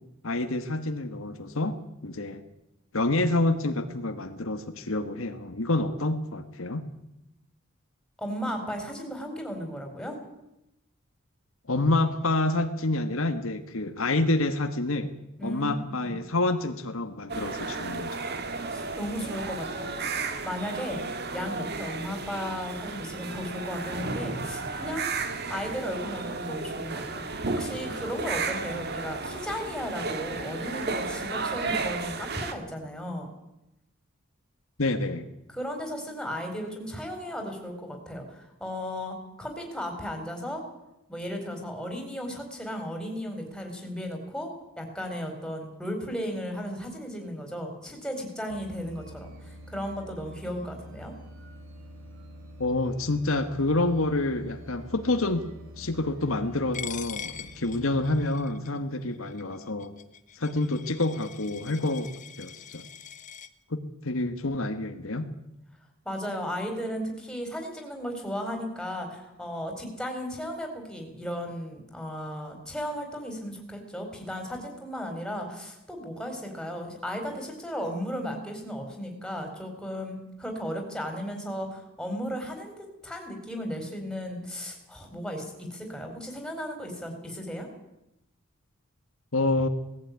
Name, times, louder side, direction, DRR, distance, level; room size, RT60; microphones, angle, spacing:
voice 1, 0.2-2.4 2.9-6.8 11.7-15.1 15.4-18.2 34.8-35.2 52.6-55.4 55.8-59.9 60.3-62.1 62.4-62.8 63.7-65.3 89.3-89.7, left 2 dB, 75° left, 7 dB, 1.6 m, -28 dB
voice 2, 8.2-10.2 15.4-15.7 18.7-20.0 20.4-21.0 21.3-25.1 25.5-33.3 35.5-40.6 41.1-44.5 44.8-51.1 66.0-87.7, equal, 5° left, 3 dB, 4.5 m, -35 dB
sound 1, 17.3-32.5, right 3 dB, 50° right, 1.9 m, -33 dB
sound 2, 48.5-58.3, equal, 65° right, 5.7 m, -46 dB
Coin (dropping), 56.7-63.5, left 8 dB, 35° left, 0.9 m, -43 dB
18.5 x 15.5 x 9.5 m, 0.88 s
head